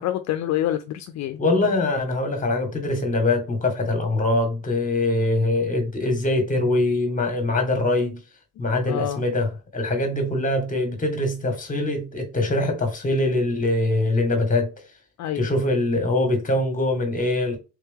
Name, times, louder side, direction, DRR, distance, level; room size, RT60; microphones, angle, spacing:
voice 1, 0.0-1.4 8.9-9.2 15.2-15.5, left 12 dB, 65° left, 0.5 m, -27 dB
voice 2, 1.4-8.2 8.6-14.7 15.3-17.6, left 2 dB, 25° left, 1.5 m, -23 dB
3.6 x 2.9 x 3.5 m
cardioid pair, 90°, 30 cm